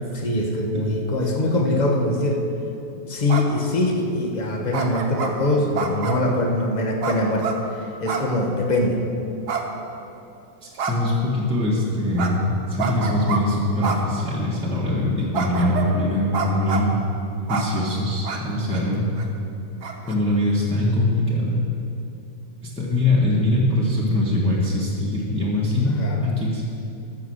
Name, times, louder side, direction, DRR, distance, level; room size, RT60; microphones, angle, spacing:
voice 1, 0.1-2.4 2.9-9.0 25.9-26.3, left 1 dB, 30° left, 2 dB, 1.0 m, -23 dB
sound 1, 3.3-3.6 4.7-5.3 5.8-6.3 7.0-7.6 8.1-8.3 8.6-8.7 9.5-10.2 10.8-11.2 12.2-12.3 12.8-13.4 13.8-14.0 14.5-14.6 15.3-15.9 16.3-16.9 17.5-17.7 18.2-18.4 18.7-18.8 19.2-19.3 19.8-20.2, right 6 dB, 65° right, 1.5 m, -27 dB
voice 2, 10.6-17.0 17.5-19.1 20.1-21.7 22.8-26.0 26.2-26.8, left 1 dB, 5° left, -6 dB, 1.5 m, -22 dB
13.5 x 6.6 x 6.5 m, 2.7 s
omnidirectional pair, 1.9 m